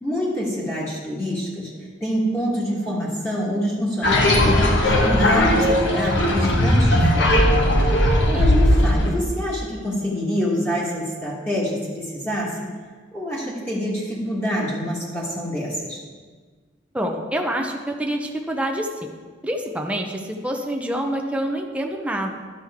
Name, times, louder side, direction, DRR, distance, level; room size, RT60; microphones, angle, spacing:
voice 1, 0.0-1.7 2.0-7.4 8.3-12.5 13.1-16.0, equal, 10° left, -7 dB, 1.5 m, -26 dB
sound 1, 4.0-9.1, left 1 dB, 70° left, 1.2 m, -18 dB
voice 2, 16.9-19.1 19.4-22.3, right 1 dB, 5° right, 1 dB, 0.7 m, -26 dB
11.5 x 6.1 x 3.6 m, 1.5 s
head